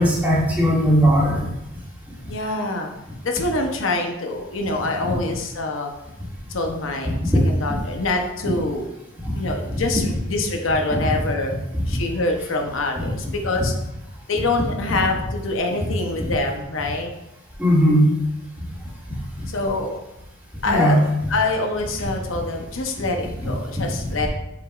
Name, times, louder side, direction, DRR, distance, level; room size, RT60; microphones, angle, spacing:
voice 1, 0.0-1.4 5.0-5.1 9.7-9.8 17.6-18.1 20.7-21.0, equal, 10° right, -7 dB, 2.1 m, -17 dB
voice 2, 2.3-2.9 3.2-5.9 6.5-7.1 7.4-8.9 9.4-11.5 11.9-13.7 14.3-17.1 19.5-20.0 20.6-21.0 21.3-24.3, left 2 dB, 90° left, 3 dB, 0.8 m, -25 dB
7.9 x 5.0 x 2.4 m, 0.90 s
head